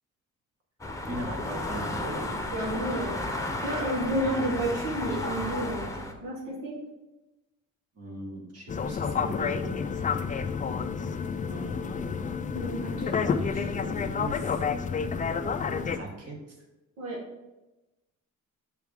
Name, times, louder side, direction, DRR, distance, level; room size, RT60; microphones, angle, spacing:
sound 1, 0.8-6.1, left 2 dB, 10° left, 0.8 m, -33 dB
voice 1, 1.1-2.3 2.9-3.0 8.0-10.1 11.4-12.3 13.2-14.6 15.8-16.3, right 1 dB, 50° right, 0 dB, 1.9 m, -39 dB
voice 2, 2.5-3.1 3.6-5.8 6.2-6.8 12.5-13.4 17.0-17.2, right 1 dB, 85° right, -1 dB, 1.6 m, -31 dB
sound 2, 8.7-16.0, left 6 dB, 25° left, 0.4 m, -30 dB
6.5 x 4.7 x 3.6 m, 1.0 s
cardioid pair, 90°, 31 cm